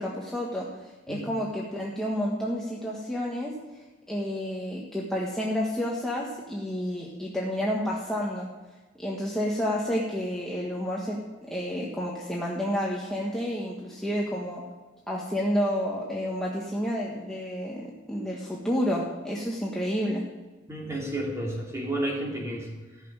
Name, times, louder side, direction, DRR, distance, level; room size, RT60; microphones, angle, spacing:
voice 1, 0.0-8.5 9.0-14.6 15.1-20.2, equal, 5° left, -4 dB, 1.4 m, -30 dB
voice 2, 20.7-23.0, right 1 dB, 15° right, -2 dB, 3.1 m, -32 dB
15.0 x 6.9 x 9.0 m, 1.2 s
head